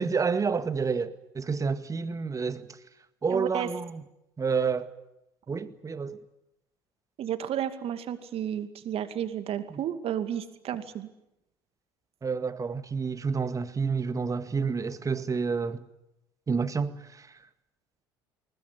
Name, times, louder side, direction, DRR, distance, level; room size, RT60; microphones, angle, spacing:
voice 1, 0.0-2.7 3.2-4.0 4.4-4.9 5.5-6.2 9.7-9.8 12.2-15.9 16.5-17.3, right 5 dB, 25° right, 1.9 m, -29 dB
voice 2, 3.3-3.7 7.2-11.1, right 10 dB, 50° right, 2.4 m, -32 dB
21.0 x 20.0 x 9.8 m
hypercardioid pair, 65°, 12 cm